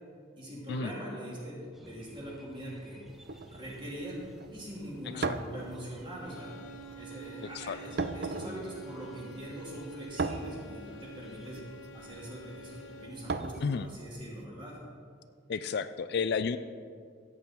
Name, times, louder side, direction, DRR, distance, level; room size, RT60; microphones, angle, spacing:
voice 1, 0.4-3.0 3.5-6.5 7.0-11.6 11.9-14.8, right 1 dB, 25° right, -5 dB, 3.1 m, -42 dB
sound 1, 1.7-13.6, equal, ahead, 0.8 m, -58 dB
sound 2, 3.1-14.4, right 3 dB, 55° right, 0.5 m, -40 dB
voice 2, 5.1-5.4 7.5-7.8 13.6-13.9 15.5-16.6, left 5 dB, 55° left, 12 dB, 0.4 m, -32 dB
sound 3, 6.2-13.4, right 2 dB, 80° left, 1.0 m, -49 dB
14.0 x 8.6 x 4.6 m, 2.2 s
head